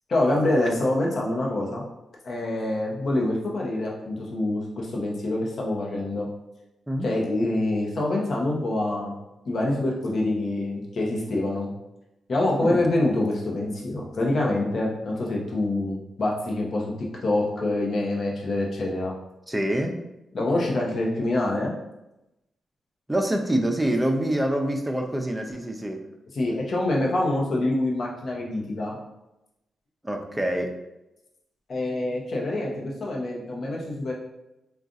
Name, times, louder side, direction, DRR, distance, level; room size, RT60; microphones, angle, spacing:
voice 1, 0.1-1.8 2.2-6.3 7.0-9.1 9.4-11.7 12.3-16.9 17.2-19.1 20.3-21.7 26.3-29.0 31.7-34.1, left 2 dB, 60° left, -2 dB, 0.8 m, -26 dB
voice 2, 19.5-20.0 23.1-26.0 30.0-30.7, right 1 dB, 15° right, 3 dB, 0.6 m, -25 dB
3.7 x 2.4 x 2.6 m, 0.91 s
supercardioid pair, 55°, 0 cm